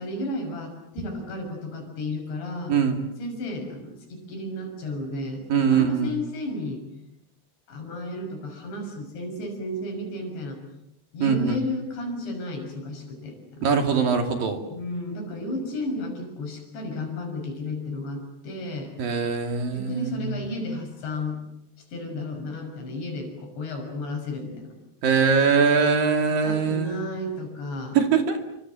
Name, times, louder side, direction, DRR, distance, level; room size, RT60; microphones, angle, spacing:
voice 1, 0.0-2.8 3.2-6.8 7.7-10.6 11.1-13.7 14.7-18.9 19.7-21.4 21.8-24.7 26.2-28.0, left 1 dB, 75° left, 3 dB, 8.4 m, -33 dB
voice 2, 5.5-6.1 11.2-11.6 13.6-14.6 19.0-20.4 25.0-27.0 27.9-28.4, right 6 dB, 55° right, 5 dB, 4.0 m, -22 dB
29.0 x 25.0 x 7.6 m, 0.78 s
omnidirectional pair, 5.0 m